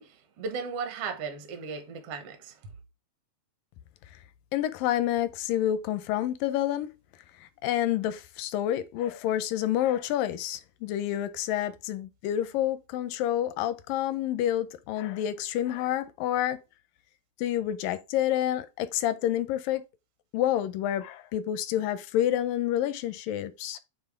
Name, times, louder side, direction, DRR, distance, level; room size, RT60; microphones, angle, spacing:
voice 1, 0.0-2.6, right 5 dB, 70° right, 1.5 m, -36 dB
voice 2, 4.5-6.9 7.4-16.6 17.4-19.8 20.3-23.8, left 12 dB, 80° left, 2.2 m, -28 dB
9.0 x 3.6 x 3.6 m
omnidirectional pair, 4.2 m